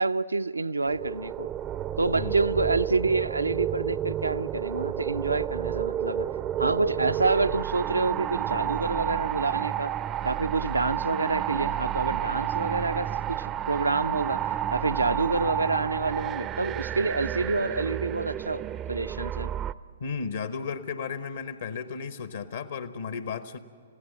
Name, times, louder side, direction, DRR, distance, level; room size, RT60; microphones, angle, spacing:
voice 1, 0.0-1.5 2.0-6.3 6.6-9.9 10.2-18.6 18.9-19.6, right 3 dB, 80° right, 0.5 m, -28 dB
sound 1, 0.9-19.7, right 11 dB, 20° right, 0.4 m, -31 dB
voice 2, 20.0-23.6, left 5 dB, 60° left, 0.9 m, -34 dB
29.5 x 16.0 x 7.6 m
figure-of-eight pair, 115°, 0 cm